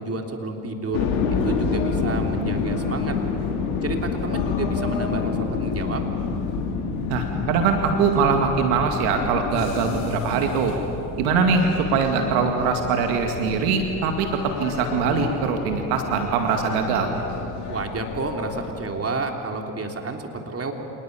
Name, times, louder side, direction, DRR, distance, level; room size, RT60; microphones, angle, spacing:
voice 1, 0.0-3.2 3.8-6.0 17.7-20.7, right 2 dB, 30° right, 3 dB, 3.5 m, -30 dB
sound 1, 0.9-18.7, left 5 dB, 75° left, 3.4 m, -29 dB
voice 2, 7.1-10.8 11.2-14.3 14.6-17.1, right 5 dB, 75° right, 4 dB, 2.3 m, -22 dB
27.0 x 19.5 x 8.6 m, 2.9 s
hypercardioid pair, 60°, 45 cm